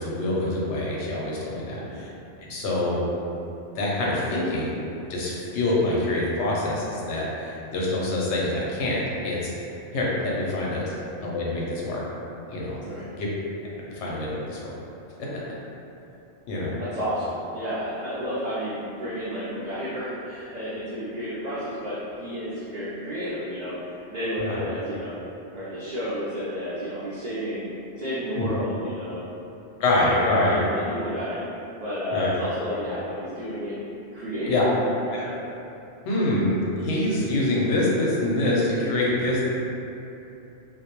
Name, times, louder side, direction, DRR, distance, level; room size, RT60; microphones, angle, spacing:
voice 1, 0.0-2.1 2.4-3.0 3.7-4.8 5.1-9.7 9.9-10.9 11.2-12.0 12.5-12.8 13.2-13.3 13.8-14.7 15.2-15.3 16.5-16.8 24.4-24.6 28.4-28.5 29.8-30.6 32.1-32.3 34.5-34.7 35.1-35.2 36.0-39.4, left 1 dB, 85° left, -5 dB, 0.9 m, -25 dB
voice 2, 1.6-2.0 12.8-13.1 16.8-23.8 24.1-25.1 25.5-29.3 30.3-33.8 34.1-34.6 35.1-35.4, equal, 60° right, -10 dB, 0.4 m, -31 dB
2.2 x 2.1 x 2.9 m, 2.8 s
omnidirectional pair, 1.2 m